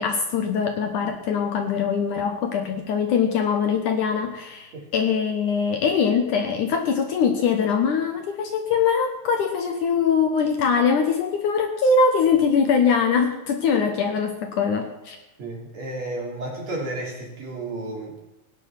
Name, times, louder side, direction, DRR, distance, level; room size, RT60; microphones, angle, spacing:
voice 1, 0.0-15.2, left 6 dB, 65° left, 5 dB, 2.4 m, -22 dB
voice 2, 15.4-18.2, right 2 dB, 45° right, -1 dB, 4.0 m, -32 dB
17.5 x 9.9 x 5.9 m, 0.97 s
omnidirectional pair, 4.4 m